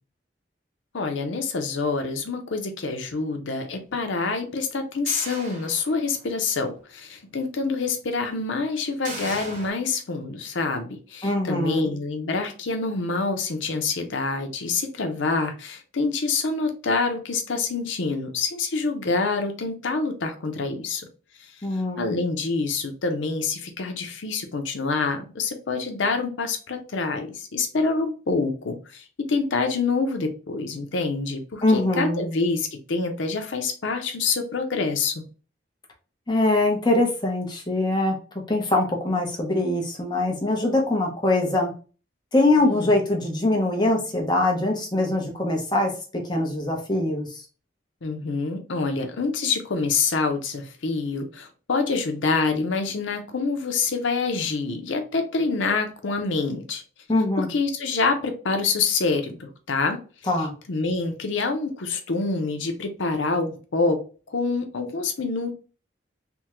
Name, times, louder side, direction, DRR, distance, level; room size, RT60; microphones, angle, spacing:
voice 1, 0.9-21.1 21.7-35.2 42.6-42.9 48.0-56.8 57.4-60.0 60.7-64.0 64.3-65.5, left 4 dB, 85° left, 6 dB, 0.6 m, -26 dB
sound 1, 5.1-6.3 6.8-6.9 9.0-9.7, right 2 dB, 40° right, 0.9 m, -37 dB
voice 2, 11.2-11.9 21.6-22.1 31.6-32.2 36.3-38.1 38.5-41.7 42.3-45.9 46.3-47.4 57.1-57.5 60.3-60.5, left 2 dB, 25° left, 1 dB, 0.8 m, -23 dB
3.5 x 2.2 x 2.9 m, 0.36 s
head